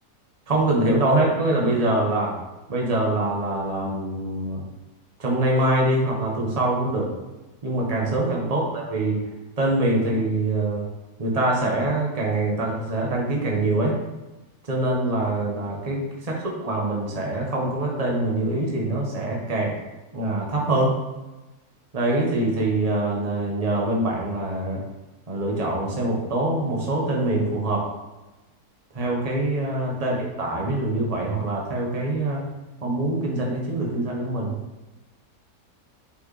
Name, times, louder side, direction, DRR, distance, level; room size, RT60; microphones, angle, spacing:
voice 1, 0.5-2.3 2.7-4.6 5.2-7.1 7.6-9.2 9.6-10.8 11.2-13.9 14.6-19.7 20.1-21.0 21.9-24.8 25.3-27.9 28.9-32.5 32.8-34.6, right 2 dB, 25° right, -2 dB, 1.3 m, -24 dB
8.2 x 4.6 x 3.3 m, 1.1 s
omnidirectional pair, 1.6 m